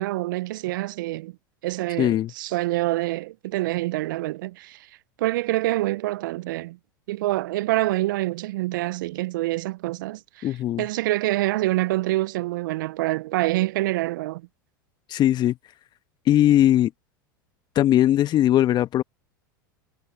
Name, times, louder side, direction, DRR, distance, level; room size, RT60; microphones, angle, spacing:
voice 1, 0.0-1.3 1.6-4.8 5.2-6.8 7.1-10.5 10.8-14.4, right 18 dB, 70° right, 0.5 m, -26 dB
voice 2, 2.0-2.3 10.4-10.9 15.1-15.6 16.3-16.9 17.7-19.0, left 12 dB, 40° left, 1.4 m, -19 dB
hypercardioid pair, 85°, 11 cm